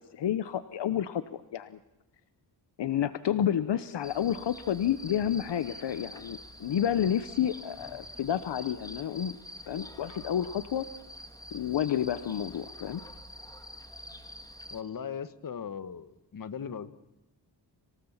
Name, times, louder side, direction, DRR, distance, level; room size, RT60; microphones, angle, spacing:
voice 1, 0.1-1.8 2.8-9.4 9.7-10.9 11.5-13.0, left 10 dB, 70° left, 13 dB, 1.0 m, -30 dB
sound 1, 4.0-14.8, left 1 dB, 10° left, 2.0 m, -46 dB
voice 2, 14.7-16.9, left 7 dB, 50° left, 13 dB, 1.4 m, -38 dB
27.0 x 18.0 x 7.3 m, 0.98 s
wide cardioid pair, 110°, 43 cm